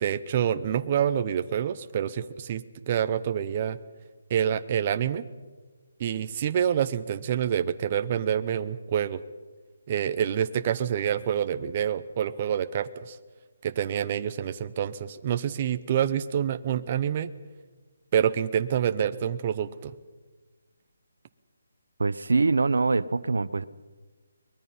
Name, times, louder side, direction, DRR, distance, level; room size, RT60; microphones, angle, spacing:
voice 1, 0.0-3.8 4.3-5.3 6.0-9.2 9.9-13.2 13.6-17.3 18.1-19.9, right 9 dB, 25° right, 10 dB, 0.6 m, -27 dB
voice 2, 22.0-23.7, right 3 dB, 85° right, 16 dB, 0.8 m, -24 dB
23.0 x 20.5 x 5.6 m, 1.3 s
hypercardioid pair, 175°, 0 cm